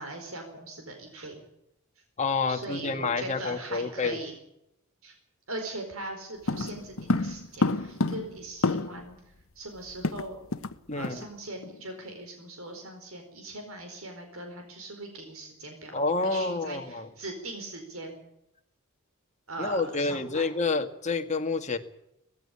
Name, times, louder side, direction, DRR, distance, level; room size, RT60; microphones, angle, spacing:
voice 1, 0.0-1.4 2.5-4.3 5.0-5.1 5.5-9.2 9.5-10.4 10.9-18.2 19.5-20.5, right 2 dB, 75° right, 4 dB, 4.6 m, -40 dB
voice 2, 2.2-4.2 10.9-11.2 15.9-17.1 19.6-21.8, left 3 dB, 35° left, 6 dB, 1.9 m, -28 dB
sound 1, 6.5-9.1 9.4-9.5 9.7-10.8 11.0-11.2 11.6-11.8, left 2 dB, 70° left, 1.2 m, -29 dB
19.5 x 15.5 x 10.0 m, 0.82 s
head